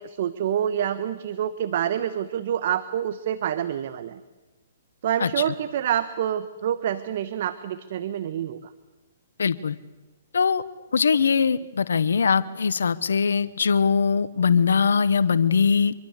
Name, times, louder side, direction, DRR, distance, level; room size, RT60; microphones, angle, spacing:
voice 1, 0.0-4.2 5.0-8.6, right 10 dB, 55° right, 12 dB, 1.3 m, -27 dB
voice 2, 5.2-5.5 9.4-9.8 10.3-10.6 10.9-15.9, left 6 dB, 80° left, 15 dB, 1.0 m, -21 dB
25.5 x 24.0 x 8.2 m, 1.1 s
hypercardioid pair, 135°, 0 cm